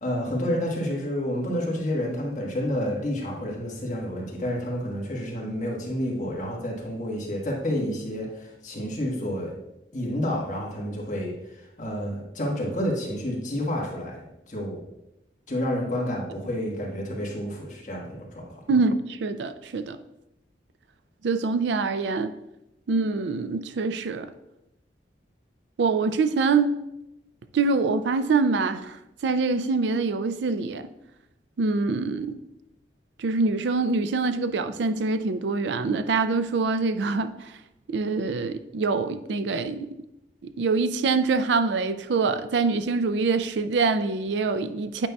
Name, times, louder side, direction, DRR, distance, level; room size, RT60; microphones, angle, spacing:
voice 1, 0.0-9.6 9.9-14.8 15.5-18.6, equal, 45° left, -3 dB, 1.5 m, -29 dB
voice 2, 18.7-20.0 21.2-22.3 22.9-24.3 25.8-26.8 27.5-30.9 31.6-32.4 33.2-37.5 37.9-39.9 40.4-45.1, right 4 dB, 75° right, 10 dB, 0.4 m, -25 dB
8.8 x 5.3 x 2.3 m, 0.90 s
head